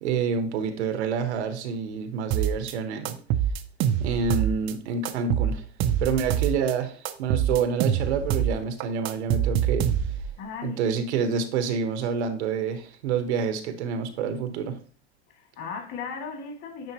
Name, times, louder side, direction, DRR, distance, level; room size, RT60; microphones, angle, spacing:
voice 1, 0.0-3.2 4.0-5.6 6.0-9.9 10.6-14.8, right 6 dB, 80° right, 1.2 m, -28 dB
sound 1, 2.3-2.7 3.1-4.7 5.1-6.7 7.1-8.6 8.8-10.3, right 9 dB, 35° right, 0.6 m, -25 dB
voice 2, 10.4-10.8 15.3-16.9, left 5 dB, 45° left, 2.4 m, -37 dB
9.4 x 4.1 x 2.9 m
supercardioid pair, 135°, 33 cm